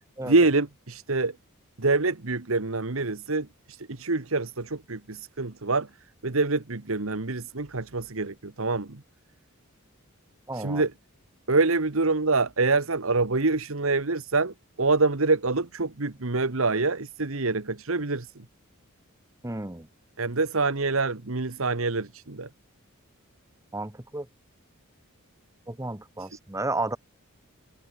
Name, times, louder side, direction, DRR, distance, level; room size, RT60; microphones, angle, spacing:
voice 1, 0.2-1.4 1.8-5.9 6.2-9.0 10.5-10.9 11.5-18.4 20.2-22.5 26.2-26.3, right 3 dB, 70° right, 1.4 m, -26 dB
voice 2, 10.5-10.8 19.4-19.9 23.7-24.3 25.7-27.0, right 2 dB, 15° right, 1.3 m, -32 dB
head